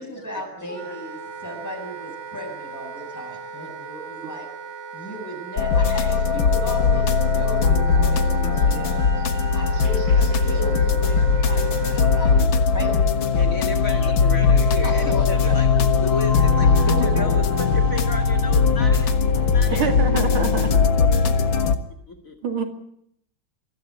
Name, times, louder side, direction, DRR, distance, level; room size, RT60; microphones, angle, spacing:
voice 1, 0.0-4.5 4.9-9.0 9.5-13.2 14.8-15.8 16.8-17.3 19.7-19.8, equal, 10° left, 0 dB, 7.6 m, -35 dB
voice 2, 0.6-0.9 13.3-19.1 19.4-20.2 20.5-20.6 21.1-21.7 22.1-22.4, left 2 dB, 40° left, 2 dB, 2.6 m, -34 dB
Wind instrument woodwind instrument, 0.7-12.5, right 6 dB, 60° right, 2.1 m, -38 dB
sound 1, 5.6-21.8, left 5 dB, 70° left, 2.1 m, -19 dB
sound 2, 5.8-17.0, right 1 dB, 35° right, 8.6 m, -49 dB
voice 3, 19.7-20.9 22.4-22.6, right 6 dB, 80° right, 5 dB, 3.3 m, -26 dB
23.5 x 14.5 x 9.9 m, 0.73 s
omnidirectional pair, 2.2 m